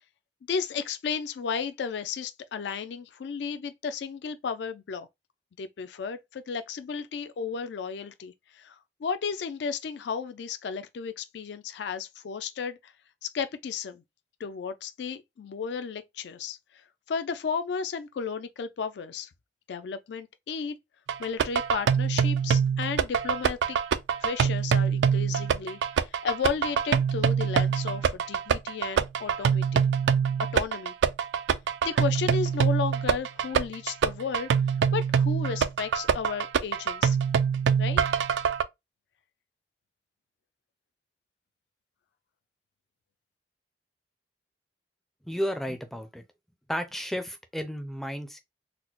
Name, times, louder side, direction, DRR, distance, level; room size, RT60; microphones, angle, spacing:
voice 1, 0.5-5.1 5.6-12.9 13.2-14.0 14.4-16.8 17.1-19.3 19.7-20.8 21.2-23.8 24.2-29.8 30.4-31.0 31.8-34.5 34.9-37.2 37.8-38.0, left 6 dB, 80° left, 0.4 m, -33 dB
sound 1, 21.1-38.6, right 7 dB, 85° right, 0.3 m, -25 dB
voice 2, 45.3-46.3 46.7-48.4, equal, ahead, 0.4 m, -33 dB
4.0 x 2.0 x 2.8 m
head